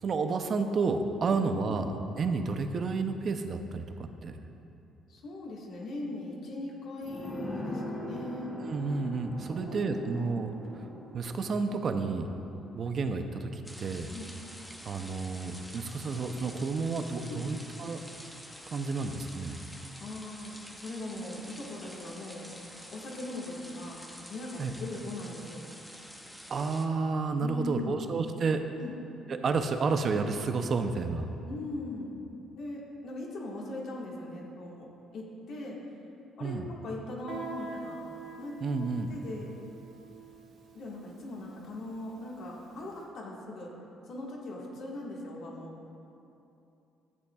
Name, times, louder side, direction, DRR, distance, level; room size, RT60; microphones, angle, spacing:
voice 1, 0.0-4.3 8.6-10.5 11.1-12.3 12.8-14.1 14.8-18.0 18.7-19.6 24.6-24.7 26.5-28.6 29.3-31.3 36.4-36.7 38.6-39.1, right 4 dB, 40° right, 7 dB, 0.5 m, -31 dB
voice 2, 5.1-8.6 9.5-10.3 14.1-14.3 17.3-17.5 20.0-22.5 22.9-24.0 24.3-25.7 27.4-28.0 28.8-28.9 31.4-32.1 32.5-35.8 36.4-38.0 38.4-38.5 39.1-39.5 40.7-43.7 44.1-45.7, left 2 dB, 60° left, -3 dB, 1.6 m, -40 dB
sound 1, 7.0-16.3 16.6-16.7, equal, 20° left, 1.1 m, -43 dB
sound 2, 13.6-26.9, equal, 5° left, 0.7 m, -48 dB
Guitar, 37.3-42.7, right 4 dB, 60° right, 0.9 m, -46 dB
13.5 x 8.3 x 2.3 m, 2.8 s
cardioid pair, 130°, 0 cm